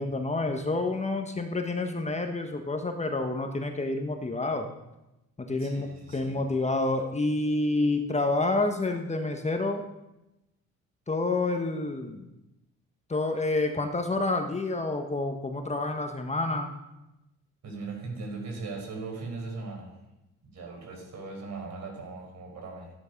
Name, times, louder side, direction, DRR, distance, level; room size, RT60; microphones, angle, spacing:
voice 1, 0.0-4.7 5.4-9.8 11.1-12.3 13.1-16.7, left 2 dB, 20° left, 5 dB, 1.5 m, -28 dB
voice 2, 5.6-6.4 17.6-19.9 20.4-22.9, right 3 dB, 65° right, 1 dB, 5.2 m, -39 dB
13.0 x 10.5 x 5.4 m, 0.94 s
cardioid pair, 90°, 30 cm